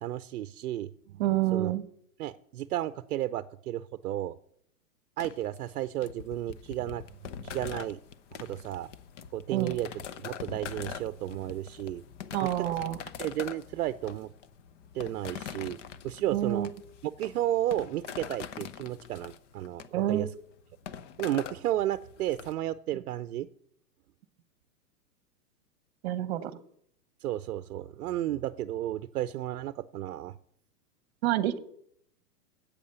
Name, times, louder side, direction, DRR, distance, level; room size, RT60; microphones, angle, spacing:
voice 1, 0.0-1.2 1.5-1.7 2.2-4.4 5.2-7.1 7.4-8.0 8.3-8.9 9.3-9.9 10.2-12.0 12.4-12.5 12.9-14.3 14.9-15.8 16.0-16.7 17.2-20.3 21.2-23.5 27.2-30.3, right 13 dB, 65° right, 14 dB, 0.6 m, -33 dB
voice 2, 1.2-1.8 9.5-9.7 12.3-13.0 16.3-16.7 19.9-20.3 26.0-26.6 31.2-31.6, right 13 dB, 40° right, 13 dB, 1.0 m, -28 dB
sound 1, 5.2-22.5, left 8 dB, 50° left, 0.8 m, -43 dB
8.5 x 8.4 x 6.8 m, 0.67 s
hypercardioid pair, 155°, 47 cm